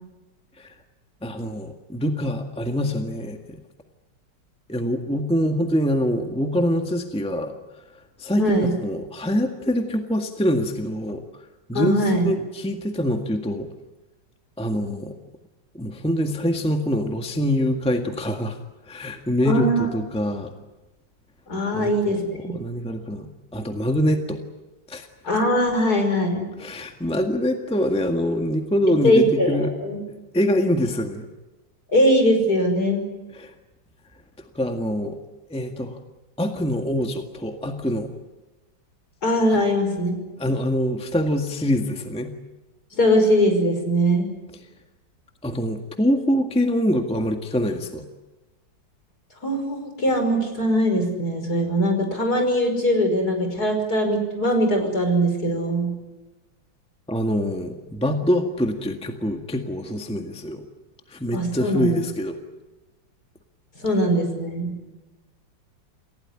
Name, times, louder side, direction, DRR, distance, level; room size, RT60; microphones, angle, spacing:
voice 1, 1.2-3.6 4.7-7.6 8.2-11.2 11.7-13.7 14.6-15.2 15.7-18.6 18.9-20.5 21.7-22.2 22.5-24.4 24.9-25.1 26.6-29.7 30.1-31.2 33.3-33.5 34.4-35.2 35.5-36.0 36.4-38.1 40.4-42.3 45.4-48.0 57.1-60.6 61.1-62.4, equal, 5° left, 4 dB, 1.6 m, -25 dB
voice 2, 8.4-8.8 11.7-12.3 19.4-19.9 21.5-22.5 25.2-26.5 29.0-30.0 31.9-33.0 39.2-40.2 42.9-44.3 49.4-55.9 61.3-62.0 63.8-64.7, equal, 55° left, 5 dB, 5.9 m, -21 dB
28.5 x 17.0 x 9.9 m, 1.1 s
omnidirectional pair, 2.0 m